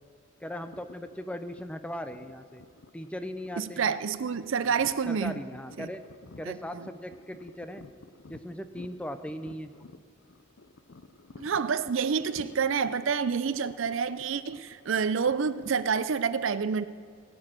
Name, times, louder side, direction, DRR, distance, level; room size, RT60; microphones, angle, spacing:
voice 1, 0.4-2.6 2.9-3.9 5.1-6.0 6.4-7.9 8.3-9.7, equal, 5° left, 0.5 m, -38 dB
sound 1, 0.6-15.7, left 3 dB, 60° left, 0.6 m, -52 dB
voice 2, 3.6-5.3 5.8-5.9 6.4-6.9 11.4-16.9, right 6 dB, 70° right, 0.5 m, -28 dB
17.0 x 6.3 x 8.8 m
head